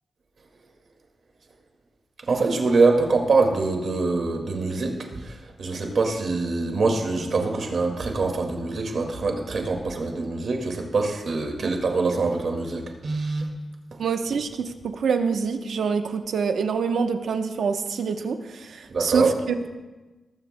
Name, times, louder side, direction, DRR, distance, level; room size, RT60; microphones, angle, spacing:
voice 1, 2.3-5.2 5.6-13.5 18.9-19.3, right 3 dB, 60° right, 3 dB, 2.0 m, -24 dB
voice 2, 14.0-19.7, right 5 dB, 85° right, 6 dB, 0.9 m, -26 dB
19.0 x 14.5 x 2.2 m, 1.2 s
wide cardioid pair, 125°, 0 cm